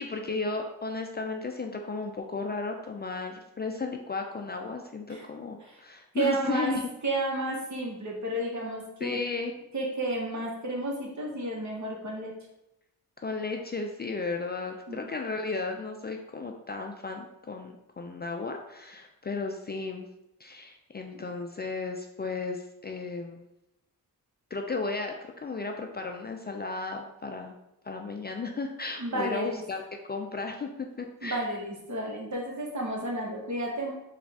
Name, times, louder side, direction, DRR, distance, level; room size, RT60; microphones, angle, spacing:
voice 1, 0.0-6.9 9.0-9.5 13.2-20.1 20.4-23.5 24.5-27.6 27.8-29.8 30.1-31.5, left 4 dB, 30° left, 3 dB, 0.4 m, -34 dB
voice 2, 6.1-6.7 7.0-9.2 9.7-12.3 14.9-15.0 29.0-29.6 31.2-33.9, right 2 dB, 50° right, -1 dB, 1.2 m, -32 dB
3.7 x 2.5 x 3.4 m, 0.90 s
cardioid pair, 55°, 37 cm